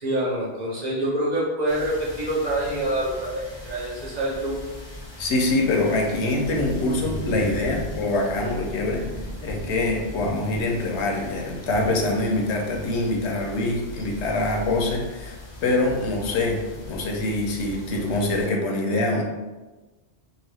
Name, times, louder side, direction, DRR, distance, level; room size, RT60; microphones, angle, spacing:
voice 1, 0.0-4.6, right 1 dB, 45° right, -6 dB, 0.7 m, -26 dB
sound 1, 1.7-18.5, equal, 35° left, 0.5 m, -37 dB
voice 2, 5.2-9.0 9.4-15.4 15.6-19.2, left 2 dB, 80° left, 0 dB, 0.9 m, -24 dB
2.8 x 2.4 x 3.3 m, 1.2 s
omnidirectional pair, 1.2 m